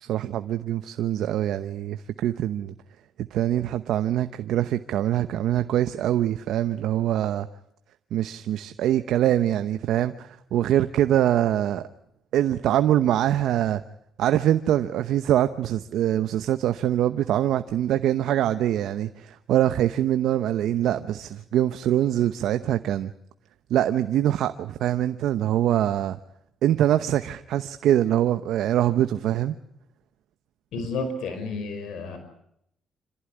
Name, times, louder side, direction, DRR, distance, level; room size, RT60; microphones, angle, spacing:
voice 1, 0.0-2.7 3.3-7.5 8.1-11.9 12.3-13.8 14.2-23.1 23.7-26.2 26.6-29.6, right 12 dB, 80° right, 0.9 m, -24 dB
voice 2, 30.7-32.2, left 3 dB, 80° left, 5.2 m, -31 dB
27.0 x 15.0 x 9.9 m
cardioid pair, 90°, 0 cm